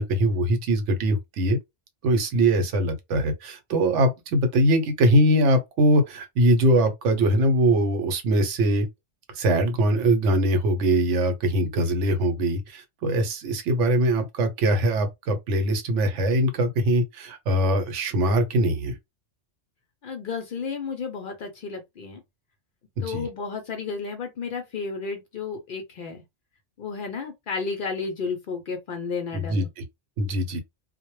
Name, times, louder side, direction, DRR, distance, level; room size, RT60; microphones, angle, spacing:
voice 1, 0.0-1.6 2.0-8.9 9.4-19.0 23.0-23.3 29.3-29.8 30.2-30.6, right 1 dB, 80° right, 1.0 m, -22 dB
voice 2, 20.0-22.2 23.0-26.2 26.8-29.7, left 5 dB, 60° left, 0.6 m, -32 dB
2.1 x 2.1 x 3.0 m
omnidirectional pair, 1.2 m